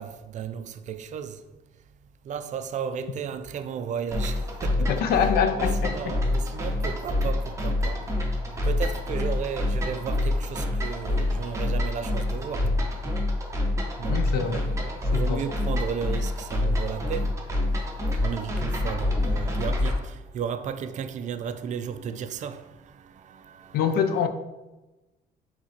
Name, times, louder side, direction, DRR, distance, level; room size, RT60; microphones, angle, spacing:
voice 1, 0.0-1.4 2.3-4.9 5.5-8.1 8.6-12.8 14.0-17.3 18.2-22.7 23.0-24.3, right 7 dB, 45° right, 0.4 m, -34 dB
sound 1, 4.1-20.0, left 2 dB, 15° right, 0.9 m, -27 dB
voice 2, 4.9-6.1 14.1-14.7 15.1-15.4 23.7-24.3, left 7 dB, 65° left, 0.5 m, -25 dB
4.9 x 3.7 x 2.9 m
cardioid pair, 110°, 17 cm